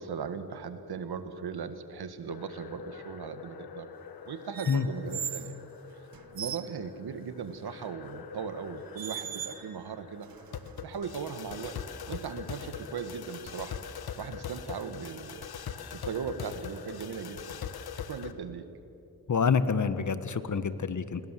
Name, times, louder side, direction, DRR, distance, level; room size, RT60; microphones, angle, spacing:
voice 1, 0.0-3.9 4.3-5.6 5.9-6.1 6.3-10.3 10.8-11.8 12.1-13.8 14.2-15.5 15.9-17.6 18.0-18.7, right 6 dB, 85° right, 10 dB, 1.8 m, -38 dB
sound 1, 2.3-18.3, left 8 dB, 75° left, 1.4 m, -43 dB
sound 2, 4.5-5.5 6.1-6.7 8.1-8.3 8.9-9.8 10.2-11.1, right 8 dB, 65° right, 1.4 m, -39 dB
voice 2, 19.3-21.2, left 6 dB, 50° left, 12 dB, 1.6 m, -27 dB
27.5 x 21.0 x 7.7 m, 2.9 s
cardioid pair, 60°, 37 cm